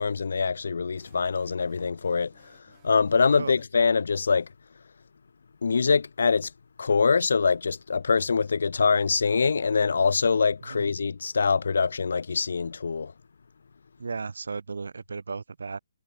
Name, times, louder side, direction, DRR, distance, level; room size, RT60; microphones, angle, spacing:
voice 1, 0.0-2.5 2.8-4.5 5.6-6.5 6.8-13.1, left 5 dB, 60° left, 0.3 m, -24 dB
sound 1, 0.9-3.8, right 22 dB, 15° right, 4.1 m, -64 dB
voice 2, 14.0-15.8, right 4 dB, 80° right, 0.6 m, -35 dB
hypercardioid pair, 180°, 0 cm